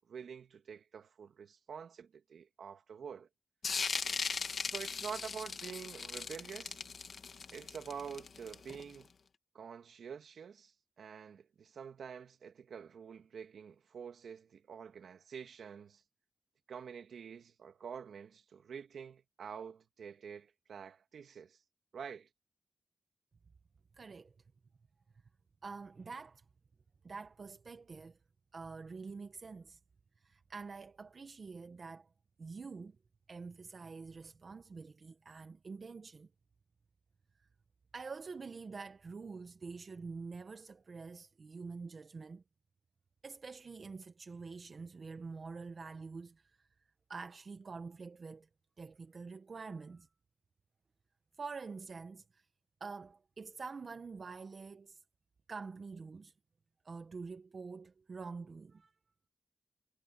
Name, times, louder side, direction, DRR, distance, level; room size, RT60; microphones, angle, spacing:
voice 1, 0.1-3.3 4.6-6.8 7.5-9.1 9.5-16.0 16.7-21.6 21.9-22.3, right 7 dB, 85° right, 2.3 m, -47 dB
sound 1, 3.6-9.0, left 5 dB, 65° left, 1.5 m, -38 dB
voice 2, 23.9-24.3 25.6-26.4 27.0-28.2 28.5-29.8 30.2-32.1 32.4-33.0 33.3-36.3 37.4-37.5 37.9-42.4 43.2-46.7 47.1-48.5 48.8-50.1 51.4-52.5 52.8-55.0 55.5-56.3 56.8-58.9, right 4 dB, 55° right, 1.1 m, -46 dB
cardioid pair, 70°, 0 cm